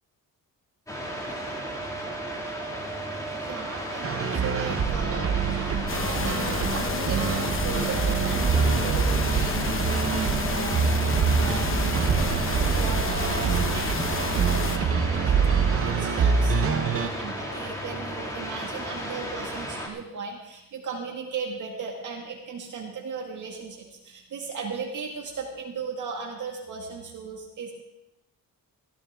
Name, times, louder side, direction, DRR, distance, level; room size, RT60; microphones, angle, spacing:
sound 1, 0.9-19.9, equal, 10° left, 2.2 m, -34 dB
voice 1, 3.4-15.4 15.7-27.7, right 5 dB, 60° right, -1 dB, 2.0 m, -37 dB
sound 2, 4.0-17.1, right 6 dB, 40° right, 0.8 m, -25 dB
sound 3, 5.9-14.8, left 4 dB, 35° left, 1.0 m, -31 dB
19.0 x 13.0 x 3.6 m, 0.91 s
wide cardioid pair, 170°, 35 cm